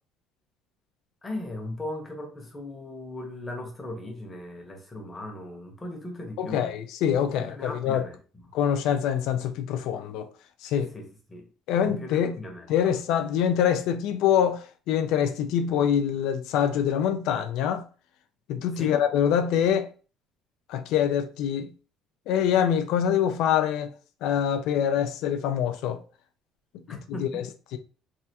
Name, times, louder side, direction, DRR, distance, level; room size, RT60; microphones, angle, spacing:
voice 1, 1.2-6.8 7.3-8.5 10.7-11.5 11.9-12.9 18.7-19.0 26.9-27.4, left 1 dB, 15° left, 0.8 m, -38 dB
voice 2, 6.4-8.0 8.5-10.3 10.6-10.9 11.7-12.3 12.7-17.8 18.5-19.9 20.7-21.7 22.3-23.9 24.2-26.0 26.9-27.4 27.7-27.8, left 9 dB, 75° left, 0.3 m, -25 dB
3.3 x 2.3 x 2.8 m
cardioid pair, 150°, 0 cm